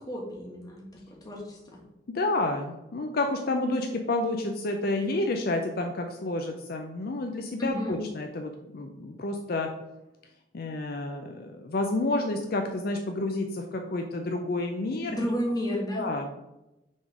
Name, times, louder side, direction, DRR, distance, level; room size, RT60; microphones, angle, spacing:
voice 1, 0.0-1.8 7.6-8.0 15.1-16.1, equal, 20° left, -3 dB, 1.6 m, -32 dB
voice 2, 2.1-9.7 10.5-15.2 15.9-16.3, left 2 dB, 55° left, 4 dB, 0.5 m, -30 dB
6.3 x 3.7 x 4.8 m, 0.95 s
head